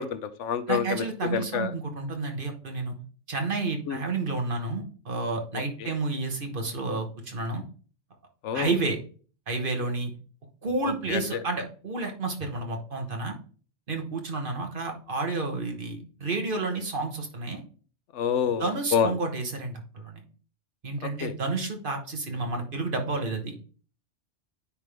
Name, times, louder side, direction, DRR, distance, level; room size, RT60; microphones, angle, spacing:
voice 1, 0.0-1.7 3.9-4.0 5.8-5.9 8.4-8.8 10.8-11.4 18.1-19.1 21.0-21.3, left 7 dB, 75° left, 13 dB, 0.9 m, -28 dB
voice 2, 0.7-2.9 3.3-7.6 8.5-9.0 9.5-10.1 10.6-13.3 13.9-17.6 18.6-20.2 20.8-23.5, right 3 dB, 45° right, 4 dB, 1.3 m, -30 dB
9.6 x 3.5 x 3.4 m, 0.40 s
omnidirectional pair, 1.2 m